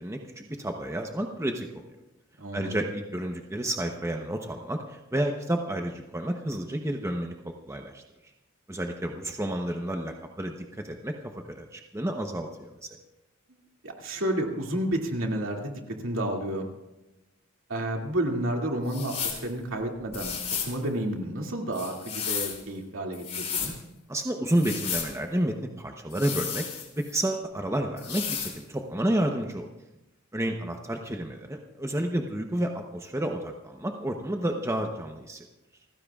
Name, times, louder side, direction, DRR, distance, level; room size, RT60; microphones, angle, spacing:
voice 1, 0.0-1.7 2.5-8.0 8.7-12.9 24.1-26.7 27.0-29.7 30.3-35.5, right 1 dB, 15° right, 3 dB, 0.9 m, -30 dB
voice 2, 2.4-2.8 13.8-16.7 17.7-20.4 20.6-23.7, right 1 dB, 65° right, 1 dB, 2.4 m, -31 dB
sound 1, 18.9-19.4 20.1-20.8 21.7-22.6 23.1-23.7 24.5-25.1 26.1-27.1 28.0-28.6, left 7 dB, 30° left, 2.8 m, -33 dB
29.0 x 15.5 x 2.4 m, 1.0 s
head